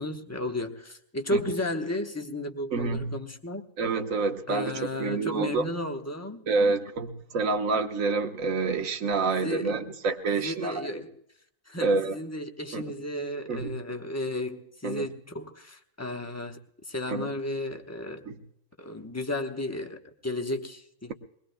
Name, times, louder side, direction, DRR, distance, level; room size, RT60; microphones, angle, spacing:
voice 1, 0.0-3.7 4.5-6.5 9.3-10.0 10.4-11.2 11.7-16.6 16.8-18.3 18.8-21.1, left 1 dB, 15° left, 0.9 m, -33 dB
voice 2, 2.7-3.1 3.8-5.7 6.5-10.9 11.8-12.2 12.7-12.8 13.5-13.8 14.8-15.1 17.1-17.3 18.3-18.4, right 4 dB, 65° right, 1.5 m, -28 dB
23.0 x 20.5 x 2.2 m
omnidirectional pair, 1.5 m